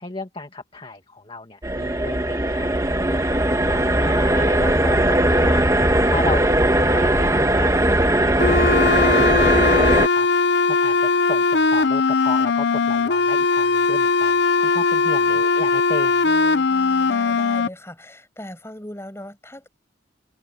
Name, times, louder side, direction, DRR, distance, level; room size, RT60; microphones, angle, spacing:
voice 1, 0.0-3.3 3.7-10.3 10.7-16.3, left 2 dB, 30° left, 2.2 m, -34 dB
sound 1, 1.6-10.1, right 1 dB, 15° right, 1.4 m, -19 dB
sound 2, 8.4-17.7, left 4 dB, 65° left, 0.7 m, -19 dB
voice 2, 16.2-19.7, left 1 dB, 15° left, 7.2 m, -39 dB
head